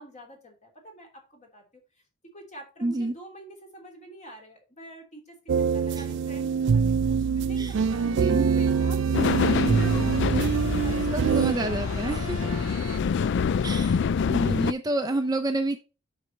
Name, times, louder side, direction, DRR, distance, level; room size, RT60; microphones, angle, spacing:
voice 1, 0.0-2.0 2.3-11.2 11.5-13.3, equal, 35° left, 1 dB, 3.2 m, -47 dB
voice 2, 2.8-3.1 5.9-6.1 7.6-7.8 8.0-8.5 11.1-12.4 13.6-15.8, right 2 dB, 20° right, 6 dB, 0.7 m, -29 dB
sound 1, 5.5-11.5, right 6 dB, 55° right, 0.3 m, -24 dB
sound 2, 7.7-13.0, right 2 dB, 80° right, 1.1 m, -36 dB
sound 3, 9.1-14.7, left 6 dB, 55° left, 0.3 m, -26 dB
7.9 x 6.3 x 4.0 m, 0.32 s
head